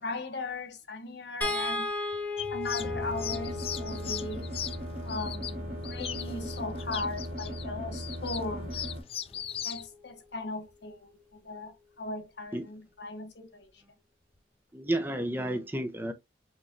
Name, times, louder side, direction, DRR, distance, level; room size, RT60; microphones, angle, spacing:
voice 1, 0.0-1.9 2.5-4.5 5.0-8.7 9.6-13.7, left 2 dB, 70° left, 1.0 m, -38 dB
sound 1, 1.4-7.7 9.3-9.4 9.8-9.9, left 2 dB, 10° left, 1.1 m, -37 dB
sound 2, 2.4-9.9, left 9 dB, 30° left, 0.3 m, -39 dB
sound 3, 2.8-9.0, equal, 45° right, 1.7 m, -38 dB
voice 2, 14.7-16.1, right 1 dB, 10° right, 0.6 m, -31 dB
6.0 x 3.1 x 2.6 m
head